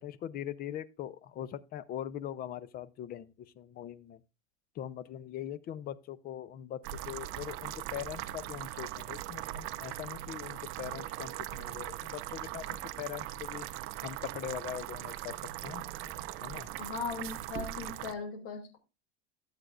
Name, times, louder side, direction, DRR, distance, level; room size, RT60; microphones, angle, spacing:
voice 1, 0.0-4.2 4.8-13.7 14.0-15.8 16.4-16.7, left 11 dB, 30° left, 0.5 m, -41 dB
sound 1, 6.8-18.1, right 14 dB, 45° right, 0.6 m, -40 dB
voice 2, 16.8-18.8, left 4 dB, 45° left, 2.7 m, -38 dB
12.5 x 8.0 x 2.4 m
supercardioid pair, 140°, 32 cm